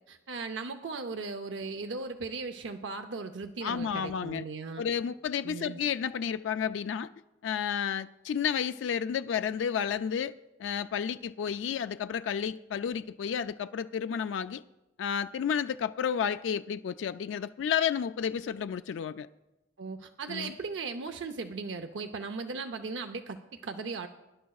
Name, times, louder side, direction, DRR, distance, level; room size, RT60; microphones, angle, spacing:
voice 1, 0.1-4.9 5.4-5.8 19.8-24.1, right 4 dB, 85° right, 0.6 m, -37 dB
voice 2, 3.6-4.4 4.8-7.1 7.4-10.3 10.6-14.6 15.0-19.3 20.3-20.5, left 8 dB, 85° left, 0.3 m, -31 dB
23.5 x 11.0 x 2.4 m
head